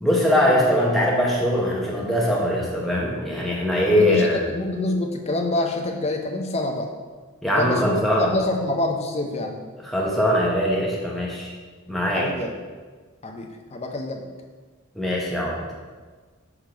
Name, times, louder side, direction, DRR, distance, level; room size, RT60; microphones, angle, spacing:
voice 1, 0.0-4.4 7.4-8.3 9.8-11.5 11.9-12.3 14.9-15.8, equal, ahead, -4 dB, 0.9 m, -21 dB
voice 2, 3.8-6.9 7.6-9.6 12.1-12.5 13.2-14.2, left 2 dB, 30° left, 3 dB, 0.5 m, -26 dB
6.0 x 3.6 x 5.0 m, 1.4 s
head